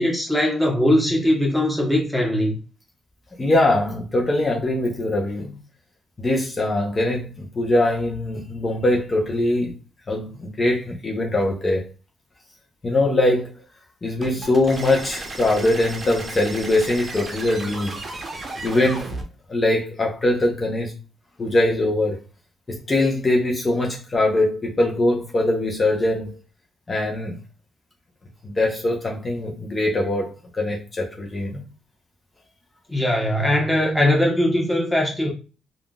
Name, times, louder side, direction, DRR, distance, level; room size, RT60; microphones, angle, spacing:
voice 1, 0.0-2.5 32.9-35.3, left 1 dB, ahead, 1.2 m, -20 dB
voice 2, 3.4-5.6 6.2-9.7 10.1-11.9 12.8-13.5 14.0-18.0 18.6-19.0 19.5-20.9 21.4-22.2 22.7-26.4 26.9-27.4 28.4-31.6, left 1 dB, 30° left, 0.8 m, -22 dB
sound 1, 14.2-19.2, right 2 dB, 40° right, 0.7 m, -34 dB
3.5 x 2.4 x 2.3 m
cardioid pair, 90°, 0 cm